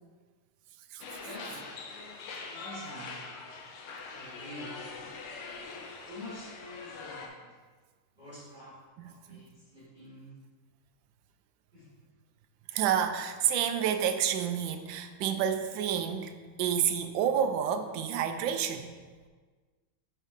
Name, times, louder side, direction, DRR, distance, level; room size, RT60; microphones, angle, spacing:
sound 1, 1.0-7.3, left 4 dB, 85° left, 1.7 m, -43 dB
voice 1, 1.2-1.7 2.3-3.6 4.1-5.1 5.7-7.5 8.2-10.3 11.7-11.9, left 1 dB, 20° right, -12 dB, 2.3 m, -47 dB
voice 2, 9.0-9.4 12.7-16.3 16.6-18.9, right 8 dB, 75° right, 7 dB, 1.2 m, -29 dB
8.1 x 4.8 x 3.7 m, 1.4 s
omnidirectional pair, 2.3 m